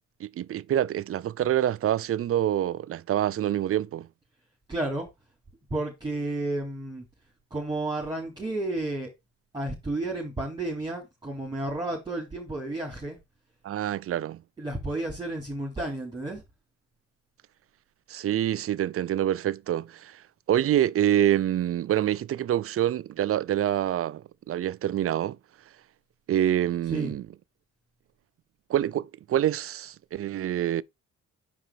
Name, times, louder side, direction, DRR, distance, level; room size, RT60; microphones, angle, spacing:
voice 1, 0.2-4.1 13.6-14.4 18.1-20.2 20.5-25.4 26.3-27.2 28.7-30.8, right 11 dB, 50° right, 0.5 m, -26 dB
voice 2, 4.7-5.1 5.7-7.0 7.5-9.1 9.5-13.2 14.6-16.4 26.8-27.2 28.8-28.9, right 2 dB, 15° right, 3.4 m, -32 dB
6.1 x 5.0 x 4.9 m
cardioid pair, 90°, 30 cm